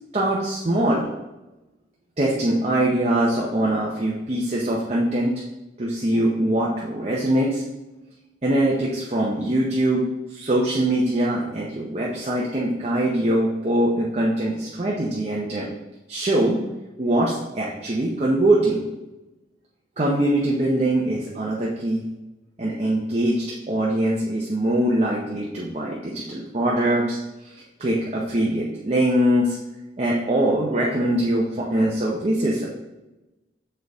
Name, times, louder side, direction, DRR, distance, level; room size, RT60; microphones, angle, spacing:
voice 1, 0.1-1.1 2.2-5.3 5.8-7.6 8.4-10.0 10.3-15.7 16.1-16.6 17.0-18.8 20.0-22.0 22.6-27.5 27.8-29.6 30.0-32.7, right 1 dB, 35° right, -4 dB, 0.7 m, -22 dB
6.4 x 4.4 x 3.5 m, 1.0 s
head